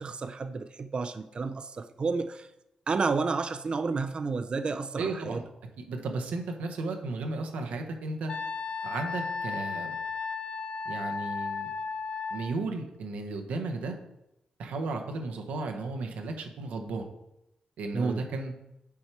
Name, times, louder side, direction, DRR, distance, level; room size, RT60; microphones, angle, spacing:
voice 1, 0.0-2.5 2.9-5.4 17.9-18.2, right 4 dB, 45° right, 10 dB, 0.4 m, -31 dB
voice 2, 5.0-5.4 5.8-8.3 8.8-10.0 10.8-11.7 12.3-13.9 14.6-17.1 17.8-18.5, right 3 dB, 90° right, 4 dB, 1.0 m, -34 dB
Wind instrument woodwind instrument, 8.3-12.5, left 5 dB, 50° left, 0.5 m, -34 dB
7.2 x 4.5 x 4.6 m, 0.87 s
cardioid pair, 85°, 2 cm